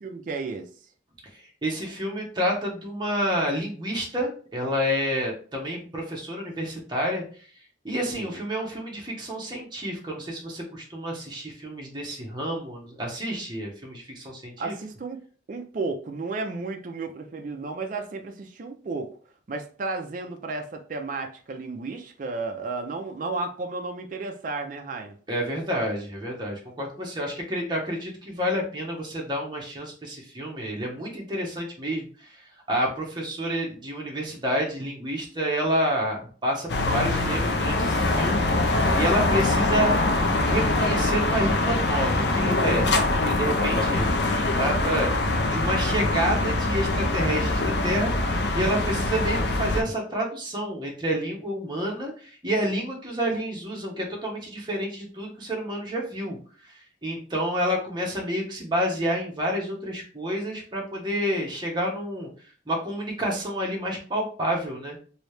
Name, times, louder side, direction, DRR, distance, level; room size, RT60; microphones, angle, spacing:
voice 1, 0.0-0.7 8.1-8.4 14.6-15.2 15.5-19.2 19.5-25.2 39.2-39.4, right 3 dB, 45° right, 0.4 m, -33 dB
voice 2, 1.3-14.7 25.3-40.0 40.4-56.4 56.6-65.0, equal, 25° right, 0.9 m, -29 dB
sound 1, 36.7-49.8, left 2 dB, 60° left, 0.5 m, -23 dB
3.1 x 2.7 x 3.2 m
head